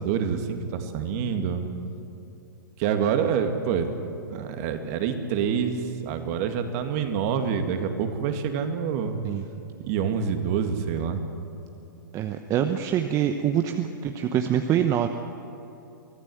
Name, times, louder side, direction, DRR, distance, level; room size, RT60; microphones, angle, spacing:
voice 1, 0.0-1.7 2.8-3.9 4.3-9.2 9.8-11.2, right 7 dB, 45° right, 6 dB, 2.2 m, -27 dB
voice 2, 12.1-15.1, right 9 dB, 30° right, 6 dB, 0.9 m, -25 dB
23.5 x 15.0 x 7.9 m, 2.9 s
hypercardioid pair, 115°, 11 cm